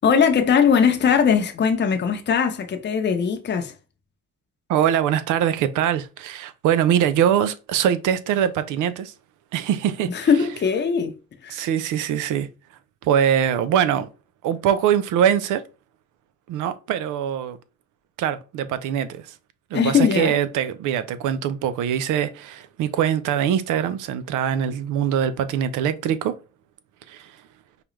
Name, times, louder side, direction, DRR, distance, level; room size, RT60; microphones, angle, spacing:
voice 1, 0.0-3.7 10.1-11.1 11.4-11.6 19.7-20.4, left 6 dB, 35° left, 0.7 m, -20 dB
voice 2, 4.7-9.1 9.5-10.3 11.5-12.5 13.0-14.1 14.4-15.6 16.5-17.6 18.2-19.3 19.7-26.4 27.1-27.4, right 9 dB, 85° right, 0.5 m, -23 dB
4.9 x 2.3 x 3.1 m
cardioid pair, 90°, 30 cm